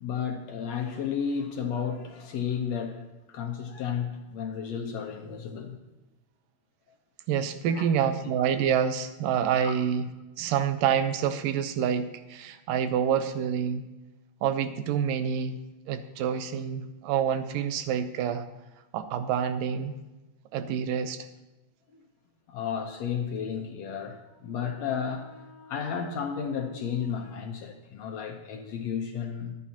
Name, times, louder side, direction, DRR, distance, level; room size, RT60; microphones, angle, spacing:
voice 1, 0.0-3.0 3.3-5.8 7.7-7.9 9.6-9.7 22.5-29.5, left 7 dB, 70° left, 3 dB, 1.8 m, -33 dB
voice 2, 7.3-10.1 10.4-13.8 14.4-15.6 15.9-18.4 18.9-19.9 20.5-21.3, right 8 dB, 90° right, 10 dB, 2.5 m, -27 dB
24.0 x 9.4 x 2.9 m, 1.1 s
omnidirectional pair, 3.8 m